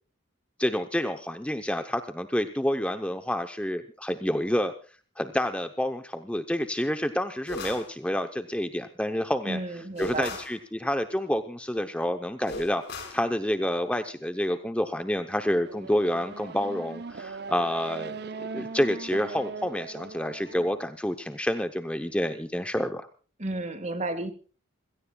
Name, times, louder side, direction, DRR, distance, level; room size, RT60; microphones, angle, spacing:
voice 1, 0.6-4.7 5.2-9.6 10.0-12.8 13.1-23.1, left 1 dB, 5° left, 7 dB, 0.8 m, -28 dB
sound 1, 7.5-7.9 10.0-10.6 12.5-13.2, left 2 dB, 55° left, 5.0 m, -37 dB
voice 2, 9.5-10.4 23.4-24.3, right 2 dB, 35° right, 11 dB, 1.8 m, -32 dB
Race car auto racing / Accelerating revving vroom, 15.6-20.8, right 4 dB, 50° right, 0.6 m, -39 dB
27.5 x 17.0 x 2.3 m, 0.39 s
head